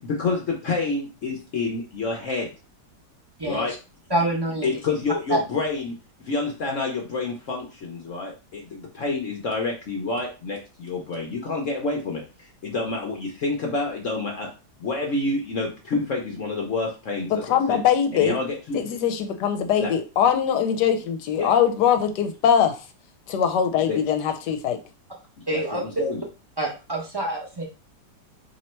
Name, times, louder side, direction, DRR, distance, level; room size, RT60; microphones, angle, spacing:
voice 1, 0.0-2.5 3.4-3.7 4.6-14.5 14.8-17.8 18.1-18.8 19.8-19.9 21.4-21.5 23.9-24.0 25.4-26.2, left 3 dB, 55° left, 0 dB, 1.0 m, -28 dB
voice 2, 4.1-4.8 5.3-5.4 25.5-25.8 26.6-27.6, right 1 dB, 20° right, -2 dB, 0.7 m, -26 dB
voice 3, 17.3-18.4 18.7-22.8 23.3-24.8, left 8 dB, 80° left, 7 dB, 1.2 m, -22 dB
3.1 x 3.0 x 4.3 m, 0.32 s
omnidirectional pair, 1.8 m